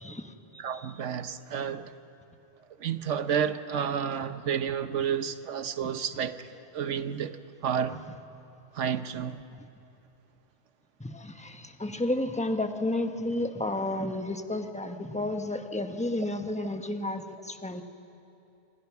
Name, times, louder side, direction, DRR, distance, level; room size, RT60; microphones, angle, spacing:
voice 1, 0.0-0.6 5.8-5.9 11.0-17.8, left 1 dB, 5° left, 6 dB, 1.1 m, -32 dB
voice 2, 0.6-1.9 2.8-6.5 6.7-8.0 8.7-9.4, right 8 dB, 80° right, 11 dB, 1.2 m, -30 dB
29.0 x 26.0 x 5.9 m, 2.9 s
omnidirectional pair, 1.2 m